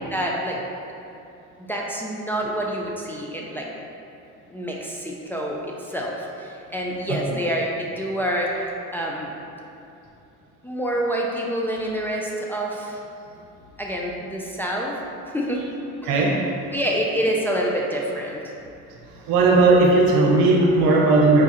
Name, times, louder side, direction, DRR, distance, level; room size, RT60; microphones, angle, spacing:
voice 1, 0.1-0.6 1.6-3.7 4.5-9.3 10.6-13.0 13.8-15.0 15.3-15.6 16.7-18.4, equal, 5° left, -3 dB, 0.5 m, -27 dB
voice 2, 16.0-16.4 19.3-21.4, right 3 dB, 80° right, -1 dB, 0.8 m, -17 dB
4.9 x 2.3 x 4.2 m, 2.7 s
supercardioid pair, 85°, 35 cm